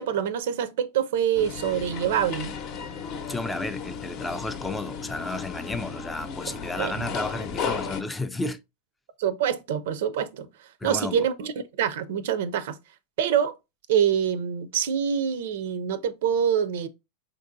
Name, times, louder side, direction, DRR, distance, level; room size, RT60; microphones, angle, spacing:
voice 1, 0.0-2.5 6.8-6.9 9.2-10.5 10.8-11.5 11.8-12.8 13.2-13.5 13.9-16.9, right 8 dB, 70° right, 0.4 m, -25 dB
sound 1, 1.3-8.0, left 6 dB, 45° left, 0.7 m, -34 dB
voice 2, 3.3-8.6 10.8-11.3, left 2 dB, 10° left, 0.3 m, -32 dB
4.3 x 2.6 x 2.6 m
hypercardioid pair, 115°, 0 cm